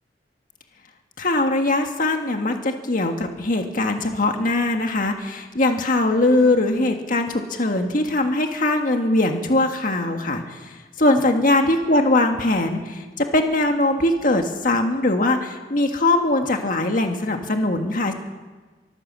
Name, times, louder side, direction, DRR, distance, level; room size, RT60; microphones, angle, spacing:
voice 1, 1.2-18.1, left 2 dB, 50° left, 4 dB, 1.7 m, -21 dB
24.0 x 15.0 x 7.5 m, 1.3 s
head